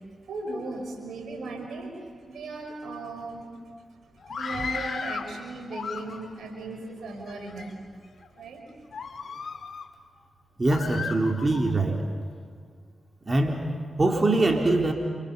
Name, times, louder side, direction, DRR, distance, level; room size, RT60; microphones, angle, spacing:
voice 1, 0.2-1.9 2.2-3.5 4.3-7.8 8.4-8.6, right 2 dB, 80° right, 4 dB, 5.7 m, -37 dB
Screaming, 4.2-5.3 5.7-6.5 7.1-7.7 8.2-8.4 8.9-9.9 10.7-11.7, left 5 dB, 65° left, 2.1 m, -35 dB
voice 2, 10.6-12.0 13.3-13.7 14.0-14.9, right 2 dB, 35° right, 2 dB, 3.8 m, -23 dB
29.5 x 28.5 x 7.0 m, 2.1 s
supercardioid pair, 40°, 0 cm